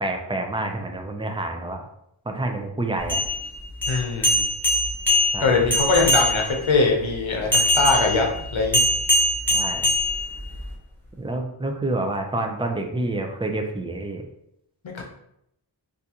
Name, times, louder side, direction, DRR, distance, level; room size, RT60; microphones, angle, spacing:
voice 1, 0.0-1.8 2.3-3.2 5.3-5.6 9.5-9.9 11.2-14.2, right 2 dB, 10° right, 3 dB, 0.4 m, -28 dB
sound 1, 3.0-6.7 7.5-10.7, left 1 dB, 5° left, 0.9 m, -22 dB
voice 2, 3.9-4.4 5.4-8.3 8.5-8.8 14.8-15.0, left 4 dB, 80° left, 1 dB, 0.8 m, -22 dB
3.6 x 2.6 x 2.8 m, 0.79 s
wide cardioid pair, 65°, 46 cm